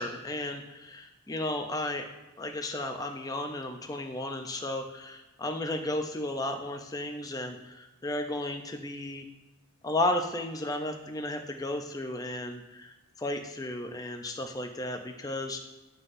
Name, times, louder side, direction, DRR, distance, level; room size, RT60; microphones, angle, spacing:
voice 1, 0.0-2.0 2.4-9.2 9.8-15.6, left 1 dB, 15° left, 4 dB, 0.4 m, -34 dB
9.5 x 3.9 x 2.6 m, 1.1 s
head